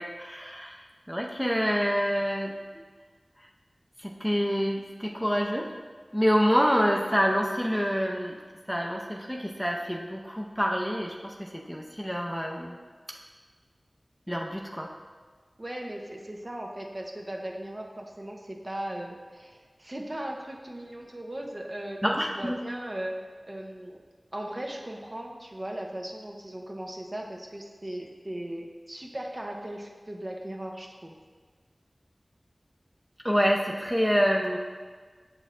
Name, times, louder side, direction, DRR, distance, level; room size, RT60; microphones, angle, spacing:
voice 1, 0.0-2.8 4.0-5.7 6.1-8.4 8.7-12.8 14.3-14.9 22.0-22.6 33.2-34.6, equal, ahead, -1 dB, 0.5 m, -27 dB
voice 2, 15.6-23.2 23.4-24.0 24.3-31.1, right 1 dB, 35° right, 1 dB, 0.7 m, -38 dB
7.8 x 6.2 x 2.5 m, 1.5 s
wide cardioid pair, 60°, 0 cm